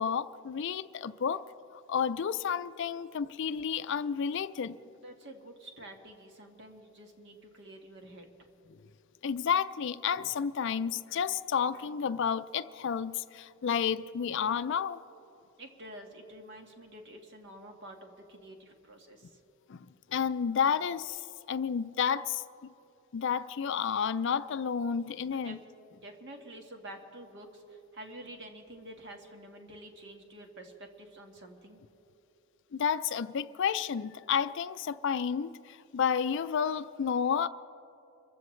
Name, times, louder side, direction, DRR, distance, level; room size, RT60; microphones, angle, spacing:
voice 1, 0.0-1.4 1.9-4.8 9.2-15.0 19.7-19.8 20.1-21.2 21.5-22.4 23.1-25.6 32.7-37.5, left 7 dB, 55° left, 13 dB, 0.4 m, -31 dB
voice 2, 5.0-8.5 15.6-19.4 25.3-25.5 25.9-31.8, right 1 dB, 50° right, 3 dB, 1.5 m, -49 dB
27.0 x 15.0 x 3.2 m, 3.0 s
head